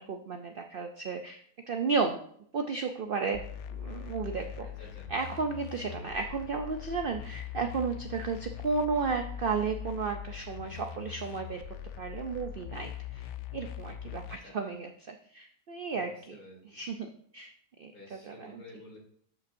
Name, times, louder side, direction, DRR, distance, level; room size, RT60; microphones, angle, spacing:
voice 1, 0.1-2.2 2.5-3.4 3.7-4.7 5.1-11.6 12.0-16.4 16.6-17.5 17.8-18.6, right 4 dB, 75° right, 5 dB, 0.5 m, -33 dB
sound 1, 3.3-14.4, left 9 dB, 70° left, 0.7 m, -42 dB
voice 2, 4.6-5.1 14.3-14.7 15.9-16.6 17.9-19.0, left 2 dB, 90° left, -4 dB, 3.7 m, -51 dB
13.0 x 5.4 x 2.6 m, 0.62 s
omnidirectional pair, 1.7 m